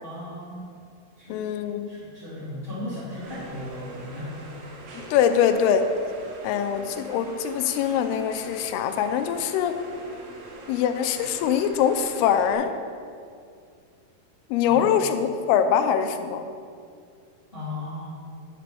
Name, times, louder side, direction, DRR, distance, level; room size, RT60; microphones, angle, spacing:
voice 1, 0.0-0.6 1.2-4.4 14.6-14.9 17.5-18.1, left 1 dB, 25° left, -10 dB, 1.3 m, -36 dB
voice 2, 1.3-1.9 5.1-5.9 6.4-9.8 10.7-12.7 14.5-16.5, left 8 dB, 85° left, 8 dB, 2.6 m, -23 dB
sound 1, 3.2-12.5, right 2 dB, 75° right, 2.7 m, -44 dB
10.0 x 7.4 x 3.4 m, 2.3 s
omnidirectional pair, 4.5 m